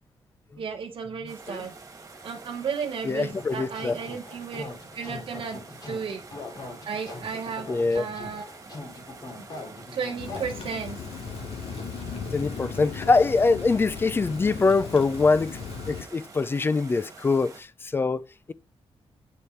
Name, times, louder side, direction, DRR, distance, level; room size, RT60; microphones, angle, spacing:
voice 1, 0.6-1.7 2.2-4.6 4.9-5.6 5.9-6.2 6.8-7.7 7.9-8.4 9.9-11.0, right 6 dB, 55° right, 1.1 m, -33 dB
sound 1, 1.3-17.6, right 4 dB, 30° right, 1.9 m, -47 dB
voice 2, 3.0-3.9 7.7-8.0 12.3-15.6 15.9-18.5, left 3 dB, 20° left, 0.5 m, -24 dB
sound 2, 3.3-10.4, left 2 dB, 40° left, 2.6 m, -41 dB
Rain, 10.2-16.0, left 5 dB, 75° left, 2.2 m, -37 dB
8.7 x 6.8 x 4.5 m
wide cardioid pair, 155°, 10 cm